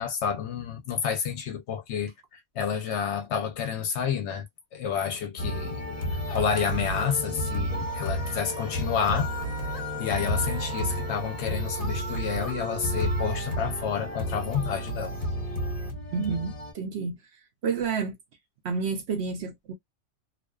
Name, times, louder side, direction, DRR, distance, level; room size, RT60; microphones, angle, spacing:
voice 1, 0.0-2.1 2.6-4.5 4.7-6.0 6.3-9.3 10.0-15.2, left 7 dB, 65° left, 0.8 m, -29 dB
sound 1, 5.4-16.7, equal, 35° left, 0.7 m, -31 dB
voice 2, 16.1-17.2 17.6-18.1 18.6-19.7, right 5 dB, 65° right, 0.7 m, -29 dB
2.4 x 2.3 x 2.2 m
omnidirectional pair, 1.4 m